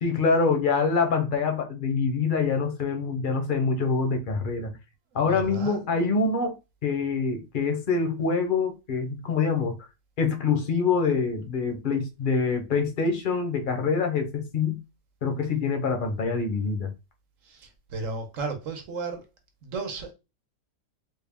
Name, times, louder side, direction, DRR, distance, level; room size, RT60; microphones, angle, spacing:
voice 1, 0.0-4.7 5.1-6.5 6.8-9.8 10.2-14.8 15.2-16.9, left 4 dB, 45° left, 0.7 m, -25 dB
voice 2, 5.1-5.8 17.4-19.2 19.6-20.1, right 4 dB, 60° right, 1.2 m, -34 dB
3.6 x 2.3 x 3.5 m
omnidirectional pair, 1.6 m